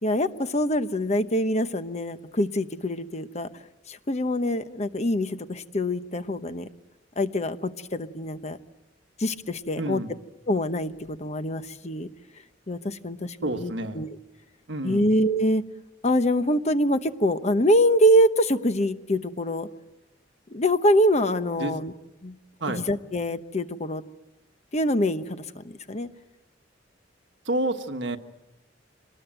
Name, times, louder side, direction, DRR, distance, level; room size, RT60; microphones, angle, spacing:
voice 1, 0.0-3.5 3.9-6.7 7.2-8.6 9.2-10.0 10.5-12.1 12.7-14.2 14.8-15.6 16.0-19.7 20.5-21.9 22.2-22.3 22.6-24.0 24.7-26.1, equal, 35° left, 10 dB, 1.0 m, -24 dB
voice 2, 9.8-10.1 13.4-14.1 14.7-15.1 21.6-21.7 22.6-22.8 27.5-28.2, right 1 dB, 65° right, 7 dB, 1.4 m, -29 dB
25.5 x 20.0 x 9.1 m, 0.98 s
head